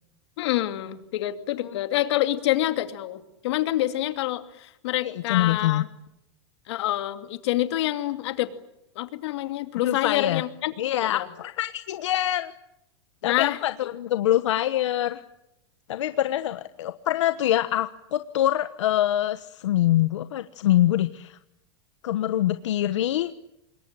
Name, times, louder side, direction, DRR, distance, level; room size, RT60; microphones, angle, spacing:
voice 1, 0.4-5.9 6.7-8.5 9.0-10.7 11.0-11.3 13.2-13.6, left 15 dB, 70° left, 8 dB, 2.6 m, -27 dB
voice 2, 5.0-5.8 9.8-10.4 10.8-12.5 13.2-15.2 15.9-21.4 22.0-23.3, left 13 dB, 90° left, 10 dB, 1.2 m, -24 dB
27.0 x 21.5 x 8.9 m, 0.82 s
supercardioid pair, 150°, 15 cm